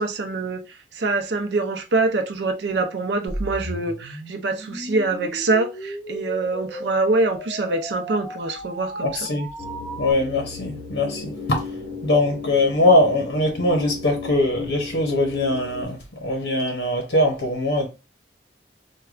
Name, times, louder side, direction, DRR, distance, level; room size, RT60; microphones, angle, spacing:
voice 1, 0.0-9.3, right 3 dB, 75° right, 0.6 m, -24 dB
sound 1, 3.3-10.1, equal, 5° right, 0.9 m, -35 dB
voice 2, 9.0-9.5 10.0-11.6 12.0-17.9, left 1 dB, 85° left, 0.8 m, -21 dB
sound 2, 9.6-15.8, left 5 dB, 55° left, 0.7 m, -34 dB
4.7 x 2.2 x 2.3 m
head